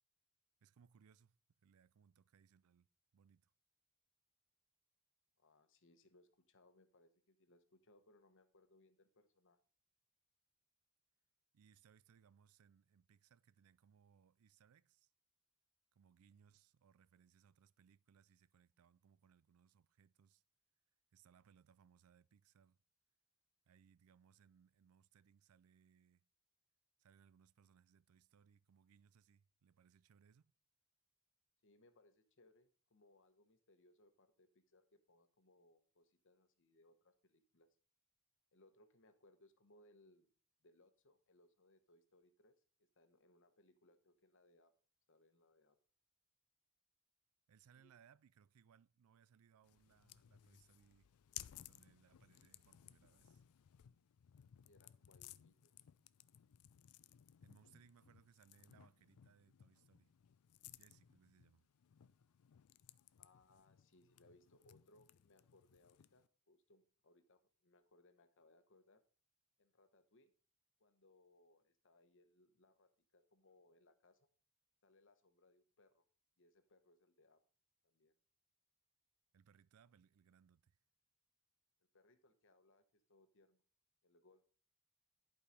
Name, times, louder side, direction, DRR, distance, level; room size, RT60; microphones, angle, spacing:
voice 1, 0.6-3.5 11.5-15.1 15.9-20.4 21.1-22.8 23.7-26.3 27.0-30.5 47.5-51.1 51.6-53.4 57.4-60.1 60.8-61.7 79.3-80.8, right 7 dB, 75° right, 0.4 m, -70 dB
voice 2, 5.4-9.6 31.6-37.7 38.5-40.3 40.6-44.7 45.1-45.8 47.8-47.9 54.7-55.7 63.2-69.0 69.6-70.3 70.8-74.3 74.8-76.1 76.4-77.4 77.8-78.1 81.9-83.6 84.0-84.5, left 2 dB, 60° left, 1.0 m, -70 dB
sound 1, 49.6-66.3, left 13 dB, 85° left, 0.4 m, -60 dB
11.0 x 4.9 x 5.1 m
head